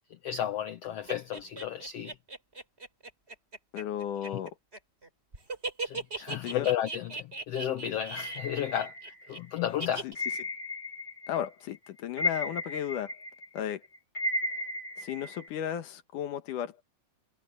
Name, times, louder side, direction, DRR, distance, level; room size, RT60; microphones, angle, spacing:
voice 1, 0.2-2.1 4.3-4.4 5.8-8.9 9.3-10.1, left 11 dB, 65° left, 1.8 m, -33 dB
sound 1, 1.1-5.1 5.3-9.4 9.8-10.1, right 3 dB, 20° right, 4.3 m, -38 dB
voice 2, 3.7-4.5 6.3-6.7 10.0-10.2 11.3-13.1 13.5-13.8 15.0-16.8, left 10 dB, 90° left, 2.9 m, -34 dB
sound 2, 8.1-9.4 10.1-11.5 11.7-15.5, left 2 dB, 25° left, 0.6 m, -35 dB
omnidirectional pair, 3.5 m